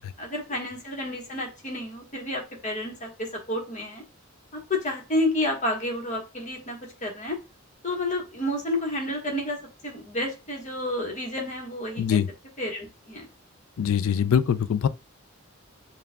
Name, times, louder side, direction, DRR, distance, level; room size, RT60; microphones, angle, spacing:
voice 1, 0.2-4.0 4.5-7.4 7.8-12.2 12.6-13.3, left 1 dB, 35° left, 1.2 m, -30 dB
voice 2, 12.0-12.3 13.8-14.9, left 8 dB, 80° left, 0.4 m, -23 dB
6.8 x 2.3 x 2.2 m
head